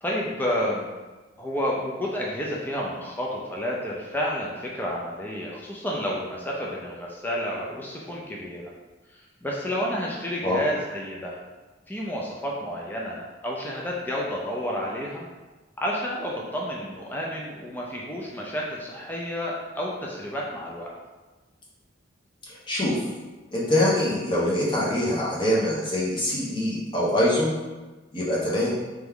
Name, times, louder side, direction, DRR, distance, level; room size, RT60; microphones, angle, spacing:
voice 1, 0.0-0.9 1.4-8.6 9.1-11.4 11.9-15.3 15.8-20.9, equal, 10° left, -3 dB, 0.4 m, -30 dB
voice 2, 23.5-27.5 28.1-28.7, left 1 dB, 25° left, -7 dB, 1.0 m, -24 dB
3.4 x 3.0 x 3.6 m, 1.2 s
head